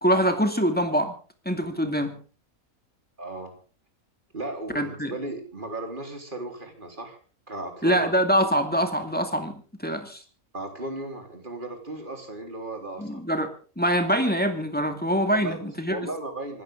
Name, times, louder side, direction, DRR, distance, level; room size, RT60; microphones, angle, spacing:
voice 1, 0.0-1.1 1.5-2.2 4.7-5.1 7.8-9.5 9.8-10.2 13.0-13.5 13.8-16.0, equal, 5° left, 6 dB, 2.3 m, -24 dB
voice 2, 3.2-3.5 4.3-7.2 7.5-8.1 10.5-13.2 15.3-16.6, right 2 dB, 35° right, 3 dB, 4.0 m, -36 dB
25.5 x 13.5 x 3.7 m, 0.38 s
omnidirectional pair, 1.5 m